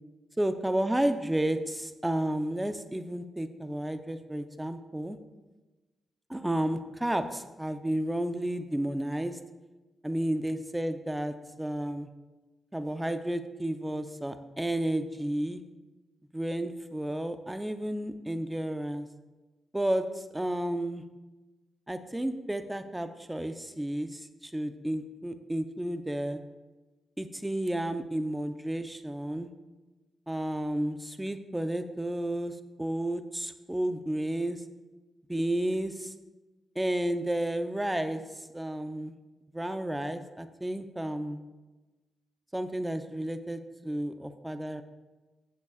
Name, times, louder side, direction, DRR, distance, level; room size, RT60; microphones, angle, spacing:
voice 1, 0.4-5.2 6.3-9.4 10.0-12.1 12.7-15.6 16.3-19.1 19.7-20.0 20.3-21.0 21.9-24.2 24.5-26.4 27.2-29.5 30.3-32.5 32.8-34.6 35.3-36.1 36.8-38.2 38.5-39.2 39.5-41.4 42.5-44.8, right 1 dB, 10° right, 8 dB, 0.7 m, -32 dB
14.0 x 8.2 x 2.5 m, 1.1 s
cardioid pair, 60°, 0 cm